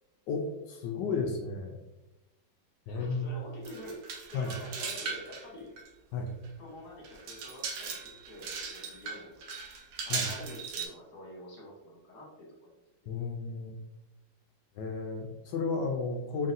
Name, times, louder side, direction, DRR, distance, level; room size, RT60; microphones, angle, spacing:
voice 1, 0.3-1.8 2.9-3.3 4.3-4.5 6.1-6.3 10.1-10.3 13.1-13.8 14.8-16.5, left 4 dB, 75° left, 2 dB, 1.0 m, -33 dB
voice 2, 2.9-5.7 6.6-9.4 10.0-12.7 13.0-13.1, left 1 dB, 55° left, -3 dB, 1.6 m, -47 dB
sound 1, 3.7-5.5 5.8-5.9 6.4-6.5 7.0-10.9, right 5 dB, 80° right, 1.6 m, -38 dB
4.0 x 3.9 x 2.6 m, 0.99 s
omnidirectional pair, 2.2 m